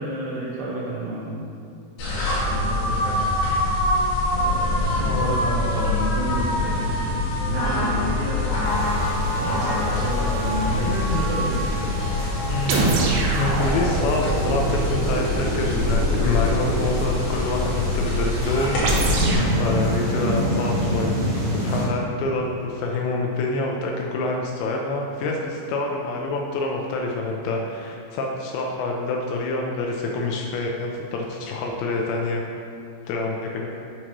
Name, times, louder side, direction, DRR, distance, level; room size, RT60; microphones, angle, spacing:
voice 1, 0.0-1.5 2.5-3.2 4.4-9.1 9.3-11.8 13.3-13.7, right 1 dB, 70° right, -5 dB, 2.9 m, -30 dB
sound 1, 2.0-19.3, left 2 dB, 60° left, 3.4 m, -24 dB
voice 2, 5.0-5.4 12.5-12.8 13.4-19.1 19.6-21.1 21.5-32.4 33.1-33.7, left 2 dB, 80° left, 0 dB, 2.7 m, -27 dB
sound 2, 8.6-21.9, equal, 55° right, 1.1 m, -29 dB
sound 3, 12.7-17.0 18.8-19.5, right 2 dB, 85° right, 2.1 m, -24 dB
11.0 x 6.1 x 3.0 m, 2.6 s
omnidirectional pair, 5.5 m